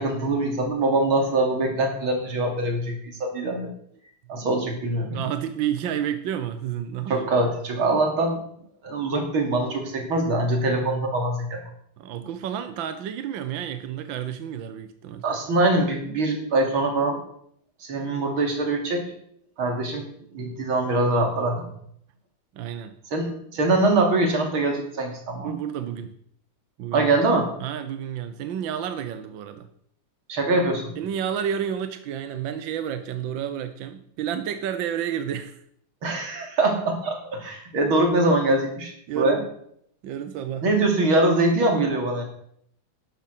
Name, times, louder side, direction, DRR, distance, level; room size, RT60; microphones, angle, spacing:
voice 1, 0.0-3.7 4.3-5.2 7.1-8.4 8.8-11.6 15.2-17.2 17.8-19.1 19.6-20.1 20.3-21.7 23.1-25.5 26.9-27.5 30.3-30.9 36.0-39.4 40.6-42.2, right 2 dB, 90° right, 2 dB, 3.6 m, -23 dB
voice 2, 5.1-7.3 12.0-15.2 22.5-23.0 25.3-26.1 26.8-27.1 27.6-29.7 31.0-35.6 39.1-39.4 40.0-40.6, right 9 dB, 70° right, 9 dB, 1.6 m, -30 dB
12.0 x 10.5 x 6.0 m, 0.68 s
omnidirectional pair, 2.2 m